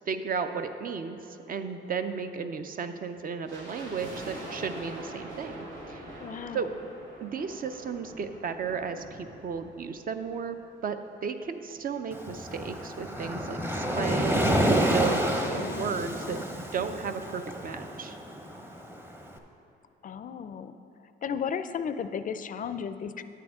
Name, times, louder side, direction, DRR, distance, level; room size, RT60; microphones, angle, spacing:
voice 1, 0.1-1.2 1.5-5.6 5.9-6.0 6.5-6.7 7.2-10.6 10.8-14.6 14.9-18.2, right 6 dB, 45° right, 8 dB, 0.6 m, -34 dB
sound 1, 3.5-10.7 11.0-11.1 11.8-13.6 13.8-13.9 14.2-14.5 14.9-15.0, right 1 dB, 90° right, 1.7 m, -45 dB
voice 2, 6.2-6.6 15.5-16.0 20.0-20.7 21.2-23.2, left 7 dB, 40° left, 11 dB, 0.4 m, -34 dB
Waves surf, 12.1-19.2, equal, 10° right, 0.7 m, -29 dB
9.6 x 8.5 x 3.6 m, 2.8 s
cardioid pair, 90°, 20 cm